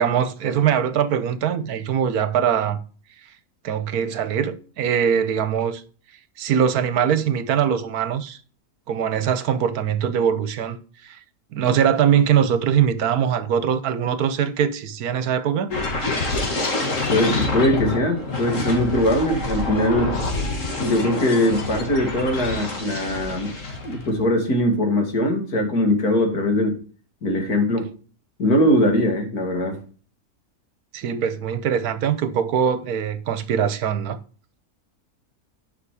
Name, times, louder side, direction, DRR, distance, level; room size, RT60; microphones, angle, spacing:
voice 1, 0.0-2.8 3.6-5.8 6.4-8.4 8.9-10.8 11.0-11.2 11.5-15.7 30.9-34.2, right 8 dB, 75° right, 1.3 m, -22 dB
sound 1, 15.7-24.2 24.6-24.8, left 2 dB, 55° left, 2.3 m, -27 dB
voice 2, 17.1-20.1 20.8-23.5 23.8-26.8 27.2-27.9 28.4-29.8, left 1 dB, 80° left, 2.8 m, -21 dB
9.7 x 5.9 x 4.8 m
omnidirectional pair, 1.6 m